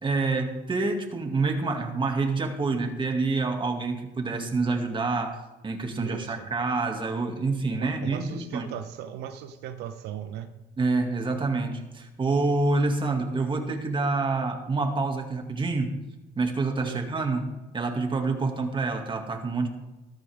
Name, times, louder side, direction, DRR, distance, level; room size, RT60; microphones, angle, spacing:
voice 1, 0.0-8.7 10.8-16.0 16.4-19.7, right 3 dB, 30° right, 4 dB, 2.4 m, -27 dB
voice 2, 5.9-6.3 7.7-10.5 16.8-17.0, right 10 dB, 85° right, 8 dB, 1.0 m, -37 dB
15.0 x 13.5 x 3.7 m, 1.1 s
cardioid pair, 110°, 17 cm